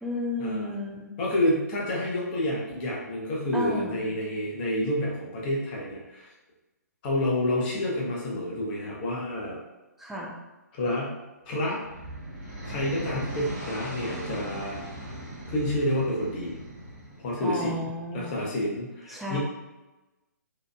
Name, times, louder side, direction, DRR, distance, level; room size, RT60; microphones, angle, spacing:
voice 1, 0.0-1.1 3.5-4.0 10.0-10.3 17.4-18.3 19.1-19.4, left 1 dB, 5° right, -4 dB, 0.3 m, -32 dB
voice 2, 1.2-6.3 7.0-9.6 10.7-11.2 11.4-11.8 12.6-15.0 15.5-16.6 17.2-17.9 18.1-19.4, left 1 dB, 30° left, -4 dB, 0.7 m, -29 dB
sound 1, 11.5-17.6, right 1 dB, 25° right, 0.8 m, -38 dB
2.8 x 2.3 x 2.2 m, 1.1 s
figure-of-eight pair, 130°, 10 cm